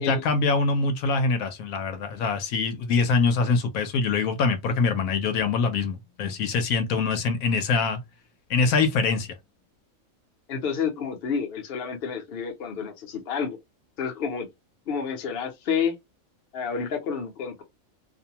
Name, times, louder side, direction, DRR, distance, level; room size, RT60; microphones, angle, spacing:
voice 1, 0.0-8.0 8.5-9.3, left 4 dB, 80° left, 1.0 m, -24 dB
voice 2, 10.5-13.6 14.0-14.5 14.9-15.9 16.5-17.6, left 6 dB, 50° left, 0.8 m, -29 dB
2.6 x 2.1 x 2.8 m
omnidirectional pair, 1.4 m